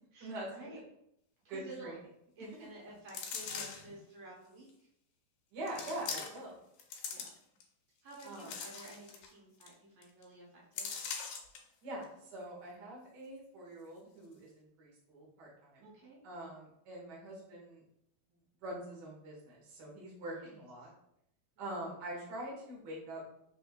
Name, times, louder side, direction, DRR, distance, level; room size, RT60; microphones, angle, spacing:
voice 1, 0.1-0.8 1.4-2.0 2.4-4.9 5.9-6.1 7.1-7.3 8.0-11.0 15.8-16.2 20.3-20.7 21.6-21.8, right 2 dB, 65° right, -4 dB, 1.6 m, -52 dB
voice 2, 1.5-2.0 2.4-2.5 5.5-6.6 8.2-8.5 11.8-15.9 16.2-17.8 18.6-20.9 21.6-23.2, right 1 dB, 85° right, -4 dB, 0.9 m, -44 dB
sound 1, 3.1-3.9 4.7-4.8 5.7-6.5 6.8-7.6 8.1-9.3 9.6-9.7 10.0-10.2 10.8-11.6 12.0-12.1, left 6 dB, 80° left, 2.0 m, -41 dB
5.4 x 3.4 x 2.3 m, 0.75 s
omnidirectional pair, 4.0 m